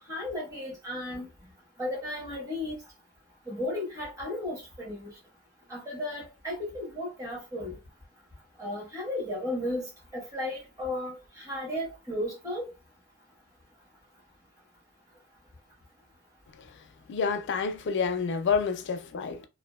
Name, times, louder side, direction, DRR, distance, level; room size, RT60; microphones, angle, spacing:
voice 1, 0.1-1.3 1.8-2.8 3.5-5.1 5.7-7.8 8.6-12.7, left 1 dB, 15° right, 1.0 m, -34 dB
voice 2, 17.1-19.5, left 5 dB, 55° left, 0.4 m, -28 dB
2.7 x 2.4 x 2.3 m
head